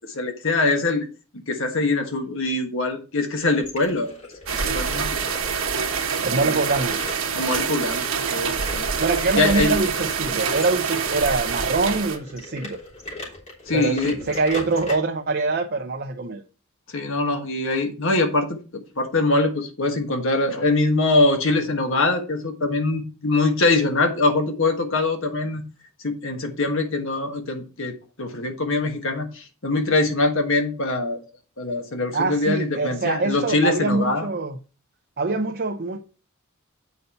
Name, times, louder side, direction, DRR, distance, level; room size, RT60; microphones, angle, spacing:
voice 1, 0.1-1.0 1.5-4.1 4.5-5.1 6.4-6.6 7.3-8.9 9.3-9.7 13.7-14.1 16.9-18.6 19.0-25.6 26.0-31.2 31.6-34.3, left 2 dB, 65° left, 1.4 m, -23 dB
sound 1, 3.4-14.9, left 1 dB, 35° left, 3.3 m, -39 dB
sound 2, 4.5-12.2, right 6 dB, 70° right, 1.4 m, -26 dB
voice 2, 6.2-7.0 9.0-12.8 13.7-16.4 32.1-34.6 35.2-36.0, right 3 dB, 45° right, 0.7 m, -24 dB
8.4 x 5.4 x 4.2 m
head